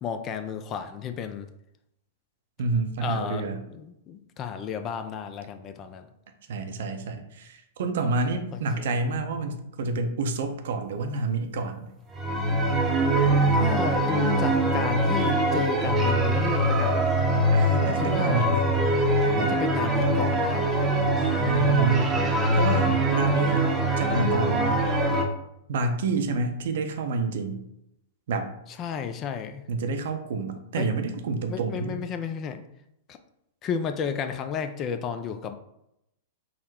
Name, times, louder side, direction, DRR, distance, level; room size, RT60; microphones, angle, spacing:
voice 1, 0.0-1.5 3.0-3.4 3.7-6.1 8.5-8.9 13.5-17.1 17.8-18.5 19.4-20.7 28.8-29.6 30.8-30.9 31.5-32.6 33.1-33.2 33.6-35.6, left 7 dB, 30° left, 9 dB, 0.3 m, -32 dB
voice 2, 2.6-3.6 6.5-11.9 17.5-18.7 19.2-19.5 21.2-22.3 22.6-23.7 24.0-24.8 25.7-27.6 28.3-28.5 29.7-32.0, right 3 dB, 60° right, 6 dB, 0.5 m, -29 dB
sound 1, 12.1-25.2, right 1 dB, 15° right, 0.7 m, -23 dB
3.8 x 2.1 x 4.3 m, 0.82 s
figure-of-eight pair, 100°, 0 cm